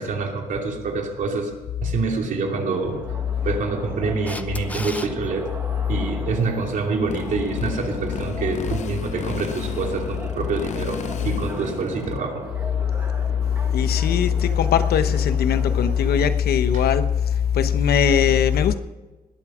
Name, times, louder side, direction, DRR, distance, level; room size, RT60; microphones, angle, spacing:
voice 1, 0.0-1.5 1.8-3.0 3.4-5.5 5.9-12.4, right 4 dB, 55° right, 2.7 m, -26 dB
sound 1, 2.5-16.3, right 2 dB, 15° right, 1.4 m, -39 dB
Camera, 4.3-5.1 11.8-11.9, left 2 dB, 10° left, 0.6 m, -34 dB
Motorcycle, 7.1-12.2, left 8 dB, 50° left, 0.7 m, -34 dB
voice 2, 13.7-14.3 14.6-17.0 17.6-18.7, left 8 dB, 85° left, 1.0 m, -19 dB
20.5 x 8.5 x 6.2 m
wide cardioid pair, 175°, 16 cm